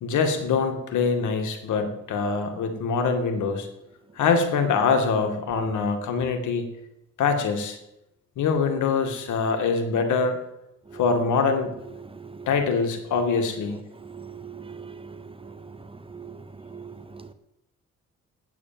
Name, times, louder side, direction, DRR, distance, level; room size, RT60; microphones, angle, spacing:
voice 1, 0.0-3.7 4.2-6.6 7.2-7.8 8.4-10.4 10.9-11.7 12.5-13.8, left 5 dB, 75° left, 6 dB, 2.1 m, -24 dB
voice 2, 14.0-15.2 15.4-15.5 16.1-16.4 16.7-17.3, right 6 dB, 20° right, 11 dB, 1.1 m, -41 dB
8.8 x 8.5 x 8.8 m, 0.86 s
cardioid pair, 90°, 30 cm